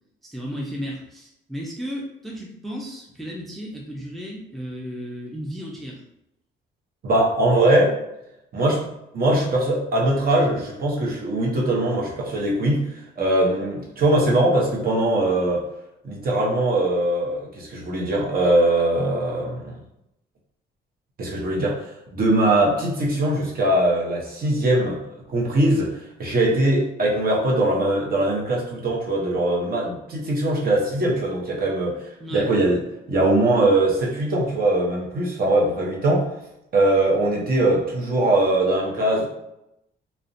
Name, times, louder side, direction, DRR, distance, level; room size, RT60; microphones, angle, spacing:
voice 1, 0.3-6.0 32.2-32.5, equal, ahead, -3 dB, 0.4 m, -34 dB
voice 2, 7.0-8.0 8.5-8.8 9.1-15.6 16.0-19.8 21.2-25.0 25.3-32.0 32.3-32.8 33.1-36.3 36.7-39.3, right 1 dB, 50° right, -3 dB, 0.7 m, -21 dB
2.4 x 2.1 x 2.5 m, 0.84 s
cardioid pair, 90°, 20 cm